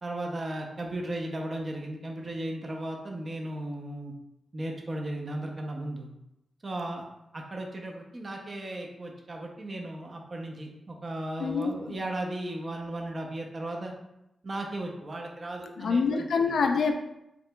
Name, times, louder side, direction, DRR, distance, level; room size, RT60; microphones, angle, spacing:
voice 1, 0.0-4.1 4.5-6.1 6.6-7.1 7.3-13.9 14.4-16.5, right 1 dB, 30° right, 1 dB, 0.6 m, -36 dB
voice 2, 11.4-11.7 15.8-16.9, left 5 dB, 70° left, 4 dB, 0.4 m, -25 dB
7.6 x 2.9 x 2.2 m, 0.85 s
wide cardioid pair, 170°, 0 cm